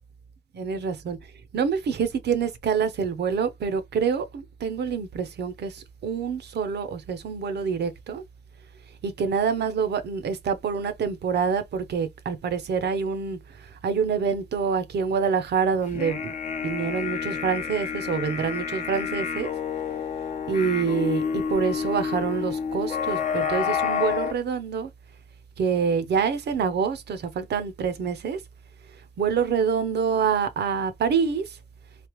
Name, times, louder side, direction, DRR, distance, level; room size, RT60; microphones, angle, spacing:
voice 1, 0.5-1.2 1.5-8.2 9.0-13.4 13.8-16.3 16.6-19.5 20.5-24.9 25.6-28.4 29.2-31.4, right 6 dB, 55° right, 0.8 m, -26 dB
sound 1, 15.9-24.3, left 7 dB, 40° left, 0.8 m, -29 dB
3.4 x 2.8 x 3.1 m
cardioid pair, 90°, 20 cm